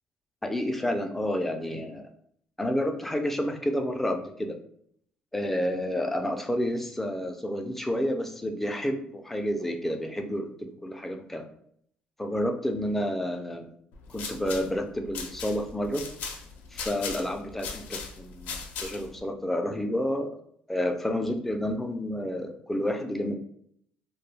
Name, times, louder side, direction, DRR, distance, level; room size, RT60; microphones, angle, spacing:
voice 1, 0.4-2.1 2.6-4.6 5.3-11.4 12.2-13.7 14.1-16.0 16.7-20.3 20.7-23.3, left 1 dB, 10° left, 5 dB, 0.3 m, -30 dB
sound 1, 13.9-19.2, left 5 dB, 75° left, 0.4 m, -39 dB
2.1 x 2.1 x 3.2 m, 0.67 s
cardioid pair, 110°, 3 cm